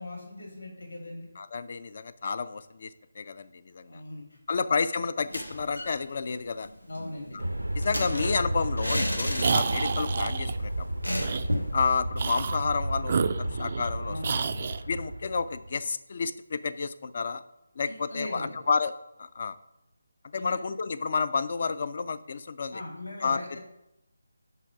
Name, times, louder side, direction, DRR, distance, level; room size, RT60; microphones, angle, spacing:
voice 1, 0.0-1.3 3.9-4.6 6.9-7.4 14.1-14.6 17.8-18.5 20.3-20.6 22.7-23.6, left 1 dB, 65° left, 0 dB, 2.2 m, -39 dB
voice 2, 1.4-4.0 4.5-6.7 7.7-11.2 11.7-14.2 14.9-17.4 17.8-18.9 19.2-19.6 20.3-22.8 23.2-23.4, left 5 dB, 40° left, 14 dB, 0.3 m, -30 dB
sound 1, 5.2-6.0 6.3-6.4 6.7-10.1 10.4-10.5 11.0-11.8, equal, 90° left, 1.4 m, -33 dB
Aircraft, 7.4-15.8, right 1 dB, 80° right, 0.6 m, -32 dB
sound 2, 9.4-10.6 11.2-11.5 12.1-12.6 13.0-13.9 14.2-14.8, right 5 dB, 35° right, 0.3 m, -29 dB
5.6 x 5.0 x 5.8 m, 0.88 s
figure-of-eight pair, 155°, 0 cm